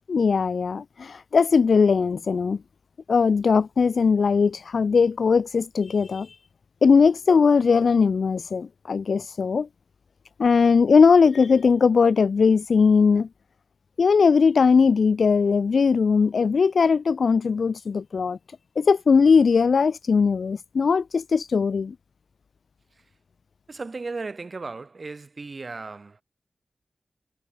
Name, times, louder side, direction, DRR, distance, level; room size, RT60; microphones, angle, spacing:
voice 1, 0.1-2.6 3.1-6.3 6.8-9.7 10.4-13.3 14.0-18.4 18.8-21.9, left 5 dB, 75° left, 0.5 m, -19 dB
voice 2, 23.7-26.2, right 3 dB, 50° right, 3.3 m, -35 dB
wide cardioid pair, 95°, 0 cm